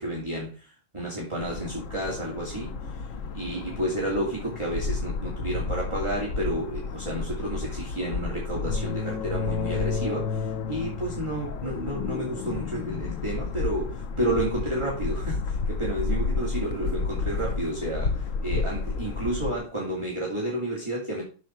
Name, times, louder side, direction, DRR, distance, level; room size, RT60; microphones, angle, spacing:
voice 1, 0.0-3.0 3.3-21.2, right 1 dB, 15° right, -4 dB, 2.6 m, -31 dB
sound 1, 1.4-19.6, left 4 dB, 70° left, 0.7 m, -31 dB
sound 2, 10.9-14.0 14.4-14.8, left 11 dB, 85° left, 1.9 m, -39 dB
12.5 x 5.5 x 4.5 m, 0.37 s
omnidirectional pair, 2.4 m